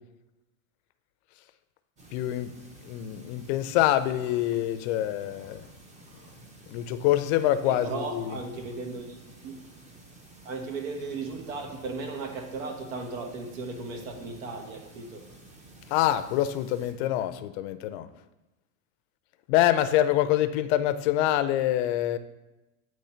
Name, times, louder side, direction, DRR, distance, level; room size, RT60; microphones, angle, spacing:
sound 1, 2.0-16.9, right 2 dB, 15° right, 0.7 m, -51 dB
voice 1, 2.1-2.5 2.8-5.6 6.7-8.4 15.9-18.1 19.5-22.2, left 13 dB, 55° left, 12 dB, 0.5 m, -25 dB
voice 2, 7.6-9.2 9.4-9.5 10.4-15.2, right 3 dB, 75° right, 4 dB, 1.2 m, -36 dB
8.4 x 3.1 x 4.3 m, 1.0 s
supercardioid pair, 125°, 40 cm